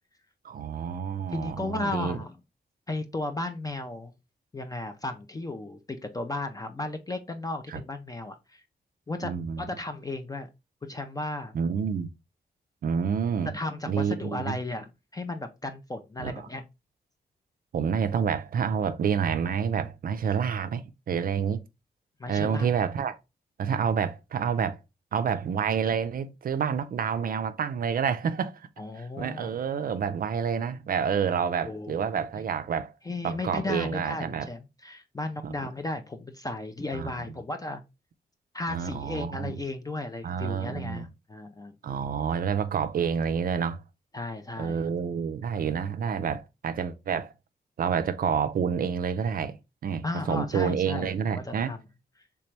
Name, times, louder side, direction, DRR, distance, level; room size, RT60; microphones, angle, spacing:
voice 1, 0.4-2.2 7.7-7.8 9.2-9.7 11.5-12.1 12.8-13.5 13.9-14.6 16.2-16.5 17.7-21.6 22.3-23.2 23.6-24.8 25.1-28.7 29.0-32.9 33.2-34.5 35.4-35.5 36.9-37.1 38.7-39.6 40.2-41.0 41.8-43.8 44.6-47.3 47.8-49.6 49.8-51.7, right 7 dB, 60° right, 0.4 m, -28 dB
voice 2, 1.3-2.4 2.9-4.1 4.5-8.6 9.1-10.5 10.8-11.6 13.4-16.6 22.2-22.7 28.8-29.6 31.7-32.1 33.1-37.8 38.5-41.7 44.1-44.8 50.0-51.8, left 2 dB, 20° left, 0.4 m, -35 dB
3.3 x 2.9 x 3.2 m
cardioid pair, 85°, 17 cm